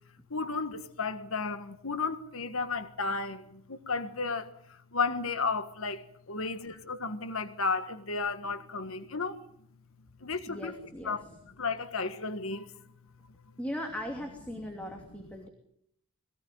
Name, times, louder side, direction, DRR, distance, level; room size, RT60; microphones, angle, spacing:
voice 1, 0.3-4.5 4.9-9.4 10.2-10.8 11.0-11.2 11.6-12.8, left 4 dB, 75° left, 1.6 m, -33 dB
voice 2, 10.5-11.2 13.6-15.5, equal, 5° left, 2.8 m, -38 dB
22.0 x 17.0 x 9.3 m
head